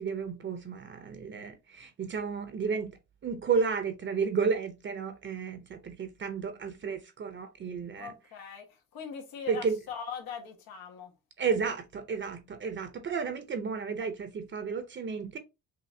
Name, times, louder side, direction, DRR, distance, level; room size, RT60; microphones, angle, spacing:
voice 1, 0.0-2.9 3.2-8.1 9.5-9.8 11.4-15.4, right 5 dB, 35° right, 0.6 m, -32 dB
voice 2, 8.0-11.1 11.6-11.7, left 7 dB, 90° left, 1.4 m, -41 dB
5.6 x 2.7 x 2.6 m
cardioid pair, 135°, 35 cm